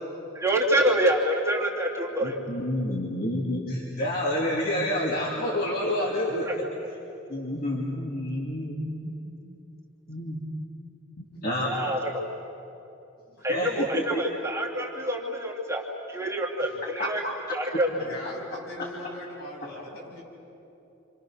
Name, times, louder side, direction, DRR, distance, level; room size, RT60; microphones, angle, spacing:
voice 1, 0.3-2.3 11.6-12.1 13.4-17.2 17.5-17.9, right 1 dB, 15° right, -3 dB, 2.8 m, -26 dB
voice 2, 2.2-6.5 7.3-9.2 10.1-10.5 11.2-11.7 13.5-14.2 17.0-17.3, left 1 dB, 45° left, -4 dB, 2.9 m, -29 dB
voice 3, 17.9-20.2, left 1 dB, 80° left, -4 dB, 8.0 m, -40 dB
30.0 x 27.5 x 6.6 m, 2.8 s
head